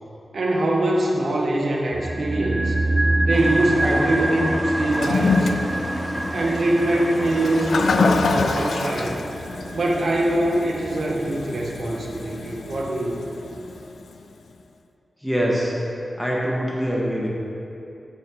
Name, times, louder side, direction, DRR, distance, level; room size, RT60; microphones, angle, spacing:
voice 1, 0.3-2.8 3.2-5.5 6.3-9.2 9.7-13.2, right 1 dB, 70° right, -2 dB, 1.1 m, -23 dB
sound 1, 1.9-12.2 12.4-12.5, right 2 dB, 30° right, 0.6 m, -26 dB
sound 2, 3.3-8.8, equal, 20° left, 1.1 m, -33 dB
Toilet flush, 4.9-14.2, left 4 dB, 85° left, 0.3 m, -27 dB
voice 2, 15.2-15.7 16.2-17.3, equal, ahead, -4 dB, 1.4 m, -23 dB
7.3 x 6.8 x 4.5 m, 2.8 s
wide cardioid pair, 90°, 0 cm